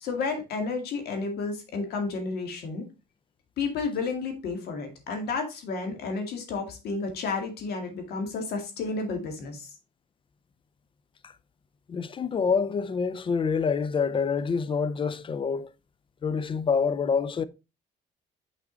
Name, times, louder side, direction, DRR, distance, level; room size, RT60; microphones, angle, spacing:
voice 1, 0.0-2.8 3.6-9.7, left 4 dB, 70° left, 2.1 m, -31 dB
voice 2, 11.9-15.7 16.2-17.4, left 5 dB, 30° left, 0.5 m, -26 dB
6.0 x 5.3 x 3.9 m
cardioid pair, 110°, 17 cm